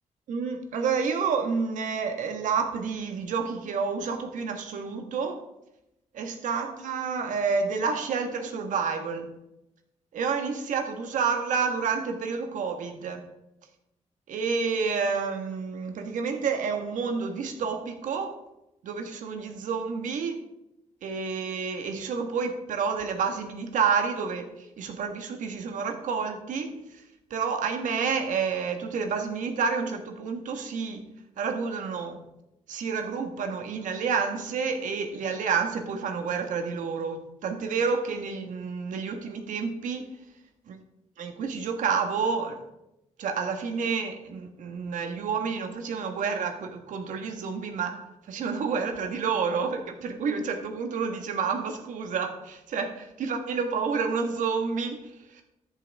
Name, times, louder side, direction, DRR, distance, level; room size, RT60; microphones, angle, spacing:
voice 1, 0.3-5.4 6.1-9.3 10.1-13.2 14.3-18.4 18.8-20.4 21.0-27.0 27.3-31.0 31.4-32.2 32.7-40.1 40.7-40.8 41.2-42.6 43.2-48.0 48.3-55.4, right 5 dB, 90° right, 5 dB, 1.5 m, -29 dB
13.5 x 7.8 x 3.5 m, 0.87 s
cardioid pair, 80°, 13 cm